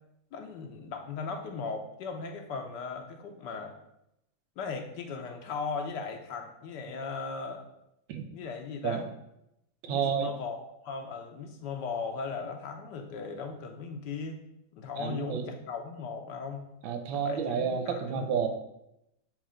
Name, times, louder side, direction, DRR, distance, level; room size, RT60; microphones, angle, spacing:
voice 1, 0.3-3.8 4.6-7.6 8.3-9.0 9.9-10.6 10.8-14.4 14.7-16.6 17.1-18.3, left 5 dB, 70° left, 4 dB, 1.2 m, -37 dB
voice 2, 9.8-10.3 15.0-15.5 16.8-18.5, right 7 dB, 85° right, 5 dB, 1.5 m, -30 dB
7.6 x 3.2 x 4.9 m, 0.83 s
omnidirectional pair, 2.1 m